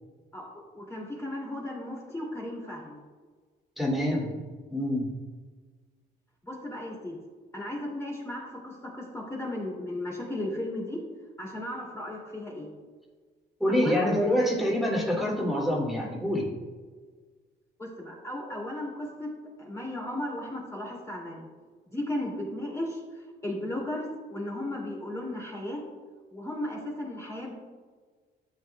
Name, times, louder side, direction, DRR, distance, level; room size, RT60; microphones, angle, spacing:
voice 1, 0.7-3.0 6.4-7.2 7.5-11.0 11.4-12.7 13.7-14.1 17.8-19.3 19.6-21.5 21.9-25.8 26.3-27.5, left 1 dB, 15° left, -4 dB, 2.5 m, -35 dB
voice 2, 3.8-4.3 4.7-5.1 13.6-16.5, equal, ahead, -5 dB, 2.6 m, -26 dB
12.0 x 8.0 x 2.3 m, 1.5 s
cardioid pair, 90°, 20 cm